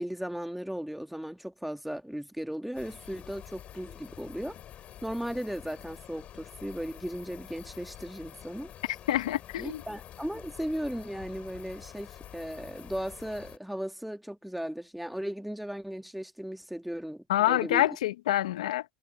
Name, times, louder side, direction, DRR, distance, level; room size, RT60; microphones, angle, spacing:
voice 1, 0.0-4.6 5.0-8.7 9.6-17.9, equal, ahead, 1.7 m, -36 dB
sound 1, 2.7-13.6, left 11 dB, 35° left, 5.8 m, -48 dB
voice 2, 9.1-9.8 17.3-18.8, left 14 dB, 75° left, 1.1 m, -26 dB
hypercardioid pair, 105°, 4 cm